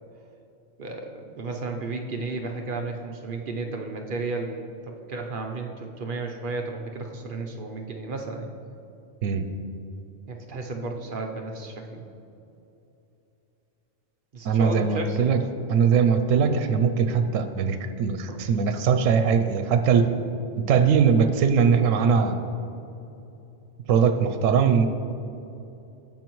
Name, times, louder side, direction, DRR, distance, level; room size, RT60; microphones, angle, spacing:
voice 1, 0.8-4.6 4.9-8.5 10.3-12.0 14.3-15.3 18.3-18.5, right 3 dB, 50° right, 2 dB, 0.7 m, -33 dB
voice 2, 14.4-15.4 15.7-20.1 20.7-22.4 23.9-24.9, right 6 dB, 85° right, 8 dB, 1.0 m, -21 dB
16.5 x 5.5 x 3.0 m, 2.8 s
omnidirectional pair, 1.3 m